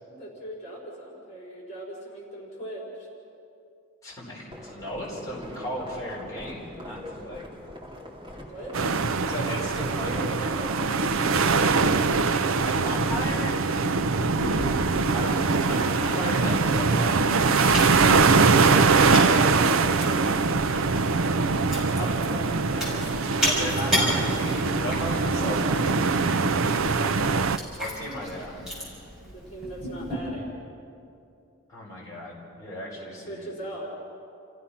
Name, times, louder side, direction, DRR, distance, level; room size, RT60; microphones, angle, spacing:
voice 1, 0.0-3.1 8.4-9.1 9.9-11.8 14.0-14.4 18.9-20.3 21.8-23.1 26.7-27.3 29.3-30.5 33.3-34.0, right 1 dB, 35° left, -4 dB, 4.8 m, -39 dB
voice 2, 4.0-7.4 9.3-10.1 12.6-13.6 15.1-17.1 18.6-19.1 21.9-22.1 23.3-26.3 27.8-28.7 31.7-33.5, equal, 15° left, -7 dB, 4.7 m, -35 dB
sound 1, 4.5-18.3, left 1 dB, 20° right, 2.7 m, -44 dB
sound 2, 8.7-27.6, right 4 dB, 75° right, 0.6 m, -23 dB
Chewing mastication, 14.4-30.1, equal, 5° right, 6.7 m, -34 dB
30.0 x 16.0 x 5.8 m, 2.6 s
head